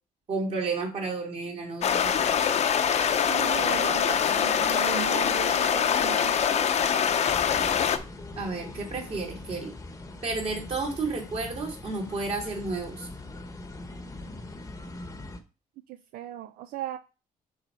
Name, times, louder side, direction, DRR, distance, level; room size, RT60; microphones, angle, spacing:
voice 1, 0.3-2.3 8.4-9.7 10.2-13.1, right 3 dB, 45° right, 0 dB, 2.7 m, -32 dB
sound 1, 1.8-8.0, left 8 dB, 50° left, 0.7 m, -24 dB
voice 2, 3.3-6.4 15.9-17.0, right 12 dB, 80° right, 10 dB, 0.5 m, -37 dB
sound 2, 7.2-15.4, left 2 dB, 20° left, 0.9 m, -42 dB
6.2 x 3.9 x 5.5 m, 0.32 s
cardioid pair, 120°, 15 cm